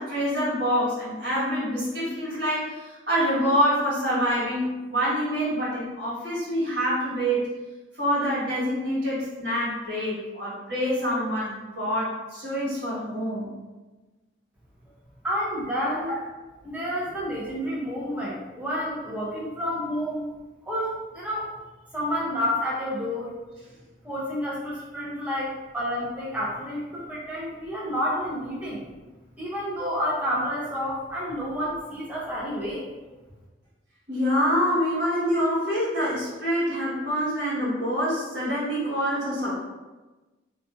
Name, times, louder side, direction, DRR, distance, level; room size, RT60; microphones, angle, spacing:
voice 1, 0.0-7.5 8.0-13.5 34.1-39.6, equal, 60° right, -9 dB, 1.4 m, -26 dB
voice 2, 15.2-16.2 16.6-20.3 20.7-21.5 21.9-23.4 24.0-28.9 29.4-32.9, equal, 10° right, -6 dB, 0.5 m, -29 dB
2.6 x 2.3 x 2.5 m, 1.2 s
head